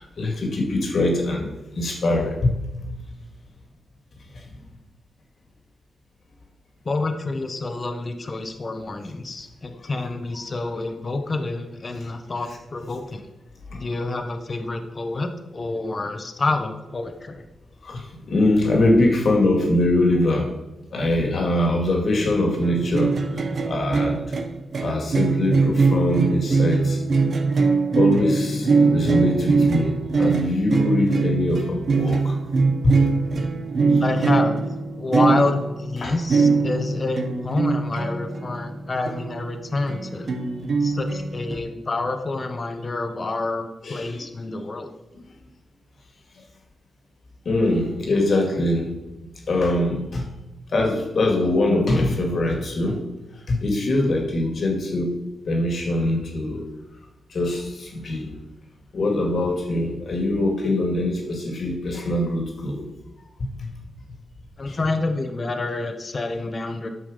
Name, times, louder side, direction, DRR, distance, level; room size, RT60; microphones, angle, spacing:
voice 1, 0.0-2.6 12.0-12.1 13.7-13.8 17.8-20.5 20.9-24.2 24.8-27.0 27.9-32.3 32.8-33.0 36.0-36.1 43.8-44.2 44.5-44.6 45.2-45.3 47.5-48.9 49.5-50.3 50.7-53.0 53.5-55.1 55.5-56.7 57.3-58.3 58.9-62.9 63.6-63.7 64.7-64.8, left 1 dB, 60° left, 2 dB, 2.2 m, -23 dB
voice 2, 6.8-13.3 13.7-17.5 34.0-34.6 35.0-40.3 40.8-44.9 64.6-66.9, left 3 dB, 40° left, 6 dB, 1.1 m, -28 dB
sound 1, 22.6-39.6 39.9-41.6, right 4 dB, 60° right, 1.1 m, -22 dB
9.2 x 6.2 x 5.1 m, 0.99 s
cardioid pair, 60°, 0 cm